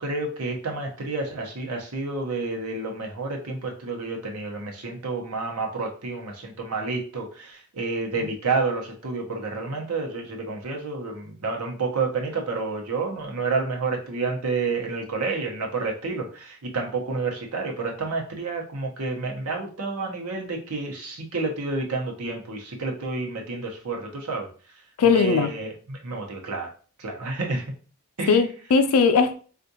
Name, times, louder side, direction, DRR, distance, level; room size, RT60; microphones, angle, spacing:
voice 1, 0.0-24.5 25.0-26.7 27.0-27.6 28.2-28.4, right 3 dB, 85° right, 0.8 m, -29 dB
voice 2, 25.0-25.5 28.3-29.3, left 5 dB, 80° left, 0.4 m, -19 dB
3.5 x 2.4 x 2.7 m
head